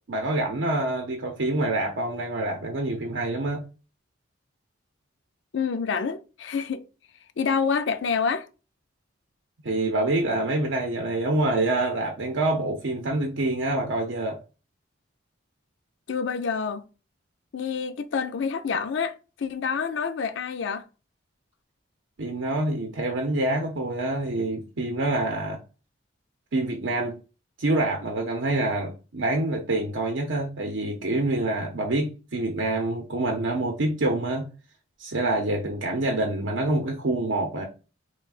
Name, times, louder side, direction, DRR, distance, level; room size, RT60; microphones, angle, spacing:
voice 1, 0.1-3.7 9.6-14.4 22.2-25.6 26.5-27.2 27.6-34.5 35.0-37.7, right 2 dB, 75° right, 0.7 m, -26 dB
voice 2, 5.5-6.8 7.4-8.5 16.1-16.9 17.5-20.8, left 5 dB, 70° left, 0.4 m, -27 dB
5.7 x 2.2 x 2.4 m
head